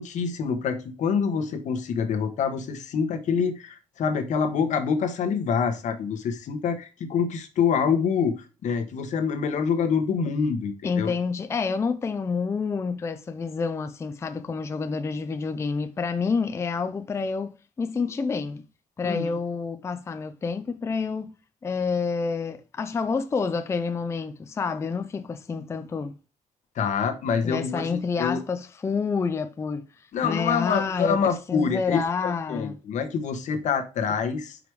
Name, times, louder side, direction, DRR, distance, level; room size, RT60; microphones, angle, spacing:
voice 1, 0.0-11.1 19.0-19.4 26.7-28.4 30.1-34.6, left 6 dB, 70° left, 1.1 m, -26 dB
voice 2, 10.8-18.6 19.0-21.3 21.6-26.1 27.4-31.2 31.5-32.7, left 5 dB, 20° left, 0.4 m, -28 dB
5.1 x 4.8 x 4.6 m
cardioid pair, 155°, 13 cm